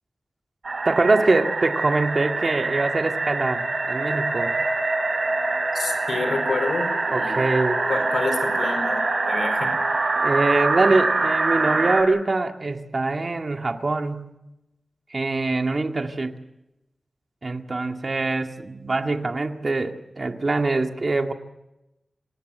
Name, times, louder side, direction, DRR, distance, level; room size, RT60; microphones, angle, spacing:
sound 1, 0.6-12.0, right 3 dB, 65° right, 3.8 m, -24 dB
voice 1, 0.9-4.6 7.1-7.8 10.2-14.3 15.1-16.4 17.4-21.3, right 3 dB, 50° right, 5 dB, 2.0 m, -23 dB
voice 2, 5.7-7.4 7.9-9.7, left 3 dB, 80° left, 8 dB, 4.8 m, -29 dB
27.0 x 17.5 x 7.7 m, 0.92 s
wide cardioid pair, 70°, 0 cm